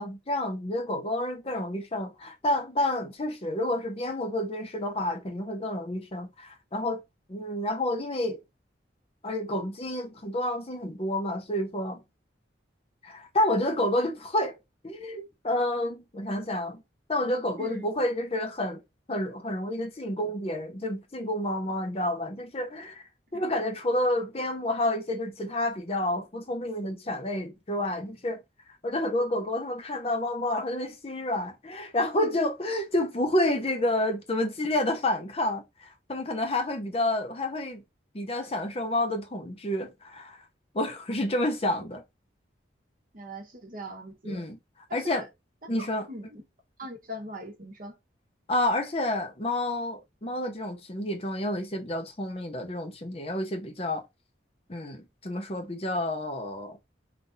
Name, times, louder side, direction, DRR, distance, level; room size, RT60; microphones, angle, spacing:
voice 1, 0.0-7.0 7.3-8.4 9.2-12.0 13.0-14.5 14.8-16.8 17.1-18.8 19.1-23.0 23.3-28.4 28.8-37.8 38.1-40.4 40.7-42.0 44.2-44.6 44.9-45.3 45.7-46.1 48.5-54.0 54.7-56.8, left 1 dB, 30° left, 0.7 m, -29 dB
voice 2, 43.1-44.4 44.9-45.2 45.8-46.4 46.8-48.0, equal, 45° right, 1.3 m, -41 dB
3.9 x 2.5 x 3.9 m
head